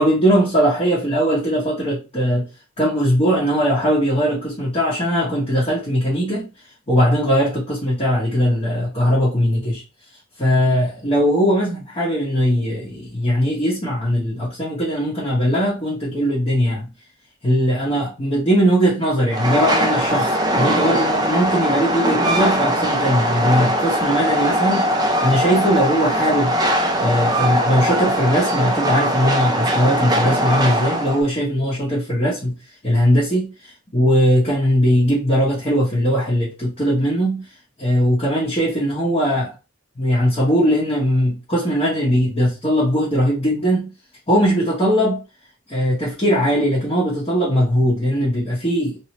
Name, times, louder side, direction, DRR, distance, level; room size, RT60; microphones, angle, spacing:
voice 1, 0.0-2.5 2.8-6.5 6.9-9.8 10.4-16.9 17.4-26.5 27.0-32.5 32.8-37.4 37.8-39.5 40.0-43.9 44.3-45.2 45.7-49.0, equal, 25° left, 0.9 m, -19 dB
Train, 19.3-31.2, equal, 20° right, 0.4 m, -20 dB
3.0 x 2.7 x 2.9 m
head